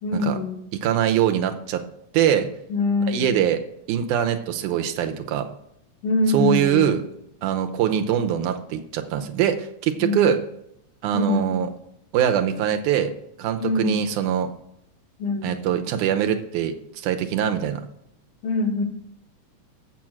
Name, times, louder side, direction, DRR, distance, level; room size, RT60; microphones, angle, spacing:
voice 1, 0.0-0.6 2.7-3.4 6.0-7.0 10.0-10.3 11.1-11.6 13.6-14.0 15.2-15.6 18.4-18.8, left 3 dB, 80° left, 1 dB, 3.0 m, -24 dB
voice 2, 0.7-1.8 2.1-2.5 3.1-3.6 3.9-5.4 6.3-7.0 7.4-10.4 11.0-11.7 12.1-13.1 13.4-14.5 15.4-16.7 17.0-17.8, right 10 dB, 80° right, 6 dB, 2.2 m, -22 dB
7.5 x 7.1 x 6.0 m, 0.76 s
omnidirectional pair, 3.6 m